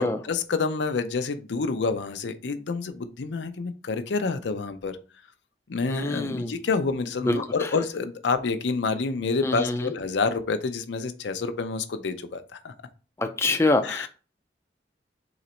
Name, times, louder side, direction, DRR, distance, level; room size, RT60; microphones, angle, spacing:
voice 1, 0.0-5.0 5.7-12.7 13.8-14.1, left 4 dB, 90° left, 9 dB, 0.5 m, -28 dB
voice 2, 5.9-6.6 7.2-7.7 9.4-9.9 13.2-14.1, left 2 dB, 15° left, 6 dB, 0.3 m, -25 dB
3.9 x 3.0 x 4.3 m, 0.36 s
head